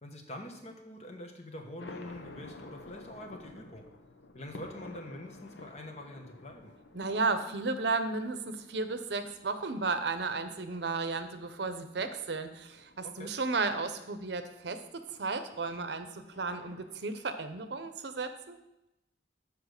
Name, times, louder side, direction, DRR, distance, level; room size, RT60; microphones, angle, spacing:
voice 1, 0.0-3.9 4.3-6.7 13.0-13.3, left 1 dB, 35° left, 3 dB, 1.1 m, -45 dB
sound 1, 1.8-17.0, left 2 dB, 80° left, 0.8 m, -53 dB
voice 2, 6.9-18.6, right 3 dB, 70° right, 9 dB, 0.7 m, -34 dB
7.2 x 4.8 x 6.5 m, 0.90 s
head